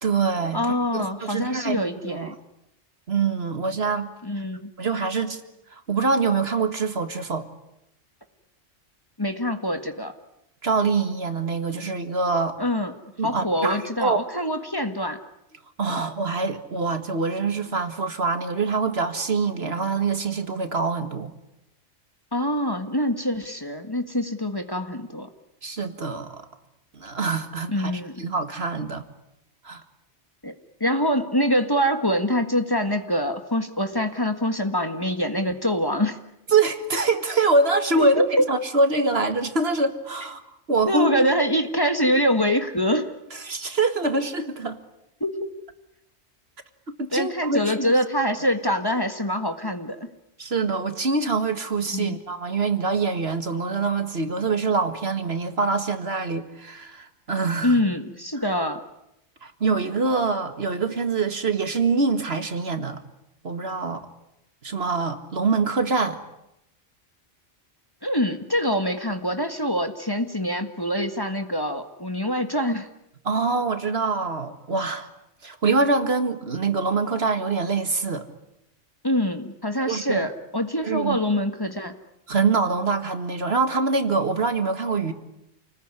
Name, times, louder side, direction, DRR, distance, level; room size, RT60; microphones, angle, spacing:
voice 1, 0.0-1.8 2.1-2.3 3.1-4.1 4.8-5.4 5.7-7.4 10.6-12.6 13.2-14.2 15.8-21.3 25.6-26.4 26.9-29.0 29.6-29.8 36.5-38.2 38.5-40.4 40.7-41.1 43.3-44.8 47.0-47.9 50.4-57.8 59.4-63.0 63.4-64.1 64.6-66.2 73.2-75.1 75.4-78.3 79.9-80.3 80.8-81.2 82.3-85.1, right 4 dB, 60° right, 8 dB, 2.0 m, -24 dB
voice 2, 0.5-2.3 4.2-4.7 9.2-10.1 12.6-12.9 13.2-15.2 15.9-16.0 22.3-25.3 27.7-28.1 30.4-30.5 30.8-36.2 37.9-38.2 40.9-43.1 45.2-45.5 47.1-50.1 51.9-52.2 57.6-58.8 68.0-72.9 79.0-81.9, equal, 20° left, 6 dB, 1.7 m, -24 dB
29.0 x 20.0 x 9.8 m, 0.84 s
omnidirectional pair, 1.2 m